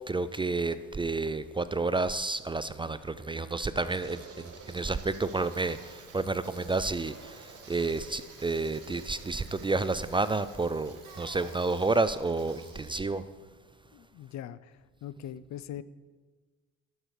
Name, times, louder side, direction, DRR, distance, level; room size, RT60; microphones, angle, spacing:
voice 1, 0.0-13.2, right 3 dB, 15° right, 13 dB, 0.3 m, -30 dB
sound 1, 3.0-12.6, right 4 dB, 50° right, 1.6 m, -52 dB
Bicycle, 4.1-14.2, right 5 dB, 70° right, 2.1 m, -55 dB
voice 2, 13.9-14.7 15.0-15.8, left 11 dB, 65° left, 16 dB, 0.5 m, -41 dB
11.0 x 6.8 x 4.8 m, 1.3 s
cardioid pair, 90°, 30 cm